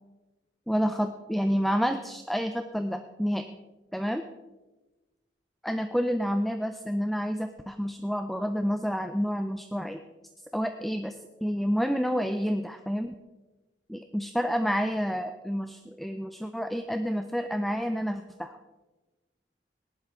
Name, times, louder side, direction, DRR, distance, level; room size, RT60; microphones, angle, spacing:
voice 1, 0.7-3.5 3.9-4.2 5.6-10.0 10.5-13.1 13.9-18.6, equal, ahead, 7 dB, 0.4 m, -29 dB
18.0 x 11.0 x 3.6 m, 1.2 s
head